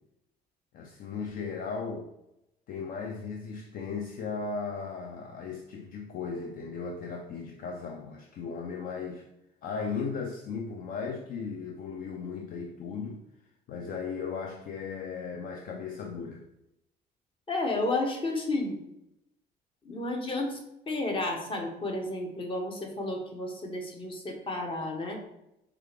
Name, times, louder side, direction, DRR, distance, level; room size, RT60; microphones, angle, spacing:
voice 1, 0.7-2.1 2.7-9.3 9.6-13.2 13.7-16.5, left 5 dB, 55° left, 2 dB, 0.4 m, -36 dB
voice 2, 17.5-18.8 19.8-20.6 20.9-25.2, left 2 dB, 30° left, 2 dB, 1.0 m, -32 dB
4.4 x 2.5 x 3.3 m, 0.85 s
cardioid pair, 110°, 17 cm